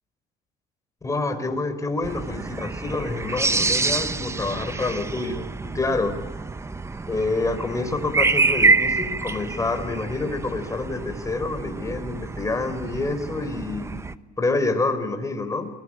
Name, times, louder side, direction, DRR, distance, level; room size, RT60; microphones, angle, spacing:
voice 1, 1.0-6.2 7.1-13.9 14.4-15.7, left 3 dB, 20° left, 8 dB, 4.1 m, -27 dB
sound 1, 2.0-14.2, right 3 dB, 15° right, 0.9 m, -27 dB
27.5 x 21.0 x 8.8 m, 1.3 s
cardioid pair, 110°, 17 cm